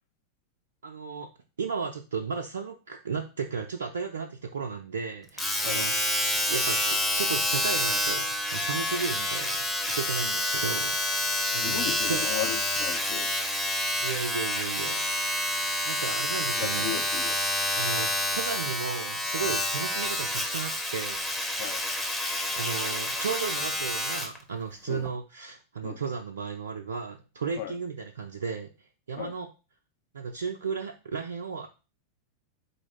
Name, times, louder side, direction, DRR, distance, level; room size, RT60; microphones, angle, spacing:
voice 1, 0.8-1.3 1.6-5.9 6.5-12.2 14.0-15.0 15.9-16.9 17.7-21.2 22.2-29.5 30.1-31.7, right 5 dB, 70° right, 3 dB, 0.4 m, -34 dB
Domestic sounds home sounds, 5.4-24.4 25.1-25.2, left 1 dB, 5° left, 0.7 m, -28 dB
voice 2, 11.6-13.3 16.6-17.4 21.6-21.8 24.9-25.0 25.8-26.0 27.6-27.7 29.2-29.3, left 11 dB, 50° left, 7 dB, 0.7 m, -35 dB
4.1 x 2.5 x 4.6 m, 0.31 s
figure-of-eight pair, 90°, 0 cm